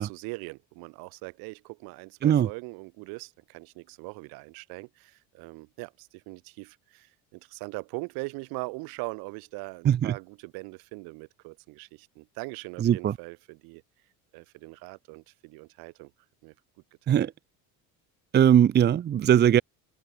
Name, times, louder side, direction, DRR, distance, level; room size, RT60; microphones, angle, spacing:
voice 1, 0.0-13.8 14.3-16.1 16.4-16.5 17.0-17.2, right 28 dB, 80° right, 6.2 m, -41 dB
voice 2, 9.8-10.1 12.8-13.1 17.1-17.3 18.3-19.6, right 10 dB, 30° right, 0.8 m, -20 dB
open air
cardioid pair, 140°, 35 cm